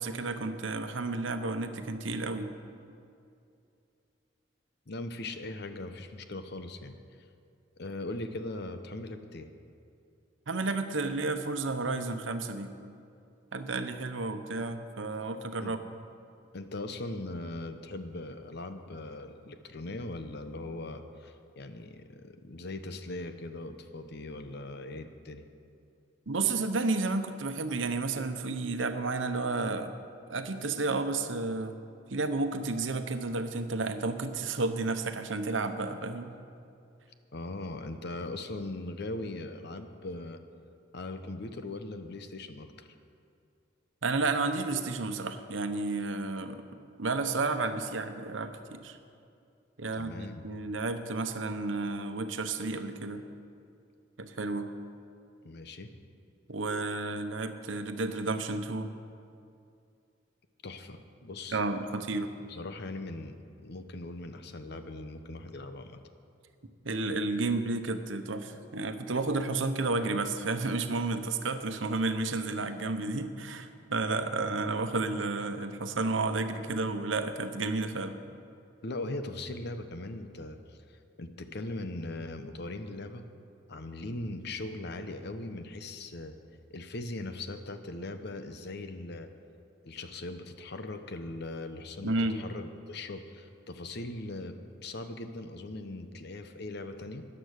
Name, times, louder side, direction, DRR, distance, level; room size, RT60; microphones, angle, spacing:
voice 1, 0.0-2.5 10.5-12.8 13.5-15.8 26.3-29.9 30.3-31.8 32.1-36.3 44.0-46.6 47.0-49.0 49.8-53.2 54.2-54.7 56.5-58.9 61.5-62.3 66.8-78.2 92.0-92.4, right 3 dB, 85° right, 8 dB, 0.9 m, -31 dB
voice 2, 4.9-6.9 7.8-9.5 15.6-15.8 16.5-25.4 37.3-40.4 40.9-42.9 49.9-50.5 55.4-55.9 60.6-61.6 62.5-63.4 63.6-66.0 78.8-83.2 83.7-86.4 86.7-89.3 89.8-97.3, left 2 dB, 60° left, 8 dB, 0.9 m, -40 dB
14.0 x 9.9 x 6.5 m, 2.5 s
head